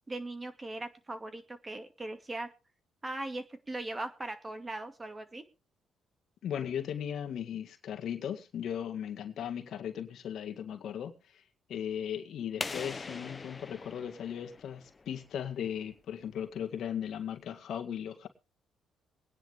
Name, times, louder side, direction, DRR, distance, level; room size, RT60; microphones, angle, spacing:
voice 1, 0.1-2.5 3.0-5.4, right 2 dB, 25° right, 2.4 m, -39 dB
voice 2, 6.4-11.4 11.7-18.3, left 9 dB, 70° left, 2.0 m, -37 dB
sound 1, 12.6-15.3, left 4 dB, 30° left, 1.0 m, -41 dB
22.5 x 10.0 x 3.6 m
cardioid pair, 90°, 0 cm